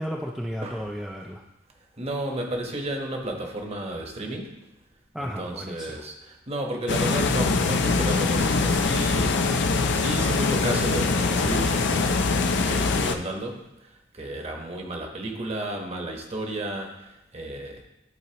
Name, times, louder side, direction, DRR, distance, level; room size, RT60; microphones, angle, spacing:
voice 1, 0.0-1.4 5.1-6.0, equal, ahead, -1 dB, 0.4 m, -33 dB
voice 2, 2.0-4.6 5.2-17.8, right 1 dB, 30° right, 2 dB, 1.1 m, -33 dB
sound 1, 6.9-13.1, left 4 dB, 60° left, 0.5 m, -23 dB
12.0 x 4.1 x 2.9 m, 0.90 s
head